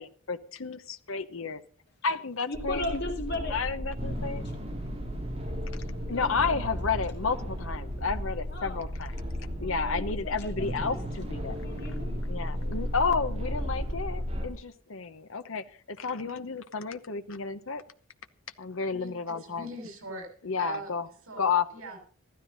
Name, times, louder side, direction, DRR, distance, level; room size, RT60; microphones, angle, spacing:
voice 1, 0.0-1.6 2.0-3.0 3.5-4.5 6.1-9.1 9.6-11.6 12.3-17.8 18.6-19.7 20.4-21.1 21.4-21.7, left 5 dB, 70° left, 10 dB, 0.9 m, -31 dB
voice 2, 2.5-3.6 4.4-4.5 6.1-6.6 8.5-8.9 9.6-10.5 10.8-11.0 11.6-12.2 12.5-12.9, left 2 dB, 50° left, 3 dB, 3.3 m, -37 dB
sound 1, 2.5-14.5, equal, 30° right, 4.0 m, -34 dB
voice 3, 18.9-20.3 20.6-20.9 21.3-22.0, right 1 dB, 80° right, 3 dB, 6.9 m, -40 dB
14.5 x 13.0 x 5.5 m, 0.43 s
head